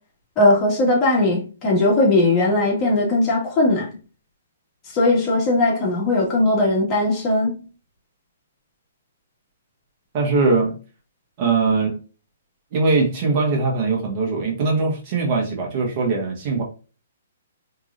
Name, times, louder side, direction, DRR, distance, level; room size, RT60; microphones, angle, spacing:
voice 1, 0.4-3.9 4.9-7.6, left 2 dB, 25° left, 2.4 m, -19 dB
voice 2, 10.1-10.8 11.4-12.0 12.7-16.6, right 3 dB, 40° right, 1.8 m, -21 dB
4.6 x 3.7 x 2.7 m
hypercardioid pair, 140°, 0 cm